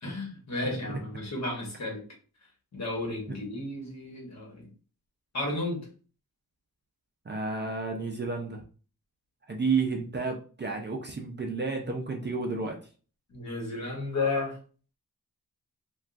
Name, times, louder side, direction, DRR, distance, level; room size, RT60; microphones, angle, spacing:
voice 1, 0.0-2.0 2.7-4.7 5.3-5.9 13.3-14.6, left 2 dB, 50° left, -1 dB, 1.2 m, -33 dB
voice 2, 7.3-8.6 9.5-12.8, right 4 dB, 30° right, 2 dB, 0.4 m, -31 dB
3.4 x 2.3 x 2.5 m, 0.38 s
wide cardioid pair, 160°, 35 cm